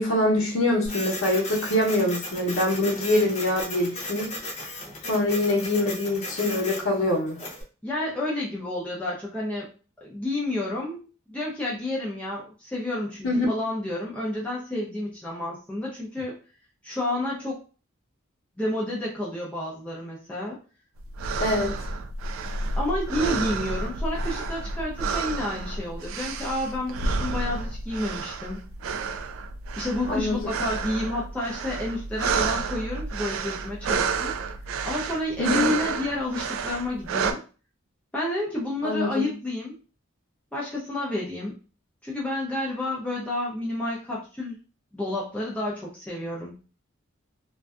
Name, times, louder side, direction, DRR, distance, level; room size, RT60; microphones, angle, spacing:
voice 1, 0.0-4.3 5.1-7.4 13.2-13.5 21.4-21.7 30.1-30.4 35.4-35.7 38.8-39.3, left 1 dB, 70° left, -3 dB, 0.8 m, -24 dB
Printer, 0.9-7.6, left 2 dB, 35° left, 0.7 m, -36 dB
voice 2, 7.8-9.7 10.0-16.4 16.8-17.6 18.6-20.6 22.8-28.7 29.8-34.3 34.8-37.4 38.1-39.7 40.5-41.6 42.0-44.6 44.9-46.5, left 1 dB, 5° left, -5 dB, 0.5 m, -30 dB
sound 1, 21.0-37.3, right 4 dB, 70° right, 0.3 m, -30 dB
2.5 x 2.2 x 2.3 m, 0.36 s
head